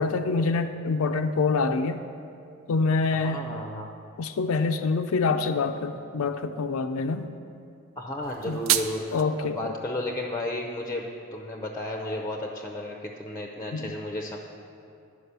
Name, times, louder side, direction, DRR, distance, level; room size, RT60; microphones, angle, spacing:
voice 1, 0.0-2.0 2.7-3.5 4.2-7.3 8.5-8.6 9.1-9.7 13.7-13.9, left 4 dB, 75° left, 7 dB, 0.4 m, -26 dB
voice 2, 3.1-3.9 8.0-14.4, left 1 dB, 15° left, 2 dB, 0.5 m, -33 dB
sound 1, 8.2-9.2, right 11 dB, 60° right, 0.4 m, -28 dB
11.5 x 5.0 x 6.7 m, 2.5 s
head